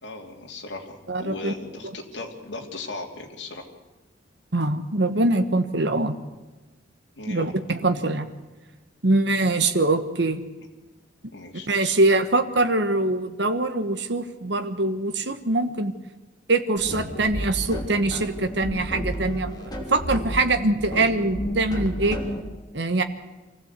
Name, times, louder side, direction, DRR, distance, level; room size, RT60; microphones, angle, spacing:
voice 1, 0.0-3.7 7.2-7.5 11.3-11.7, left 2 dB, 70° left, 1 dB, 3.0 m, -37 dB
voice 2, 1.1-1.5 4.5-6.1 7.3-8.3 9.0-10.4 11.7-15.9 16.5-22.2 22.7-23.0, right 2 dB, 65° right, 8 dB, 1.3 m, -23 dB
sound 1, 16.8-22.4, equal, 20° left, 3.3 m, -32 dB
24.5 x 16.0 x 8.3 m, 1.2 s
head